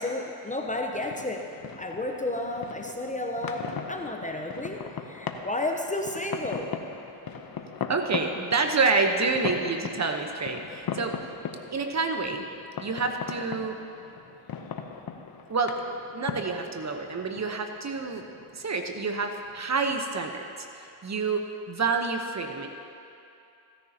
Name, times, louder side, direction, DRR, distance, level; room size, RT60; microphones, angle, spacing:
voice 1, 0.0-6.7, left 2 dB, 15° left, 2 dB, 0.9 m, -32 dB
sound 1, 0.7-20.0, left 6 dB, 45° left, 1.0 m, -39 dB
voice 2, 7.9-11.1 11.7-12.5 12.8-13.8 15.5-15.7 16.1-18.2 18.5-20.4 20.8-22.7, right 4 dB, 35° right, 4 dB, 1.1 m, -28 dB
16.0 x 10.0 x 3.0 m, 2.7 s
supercardioid pair, 70°, 49 cm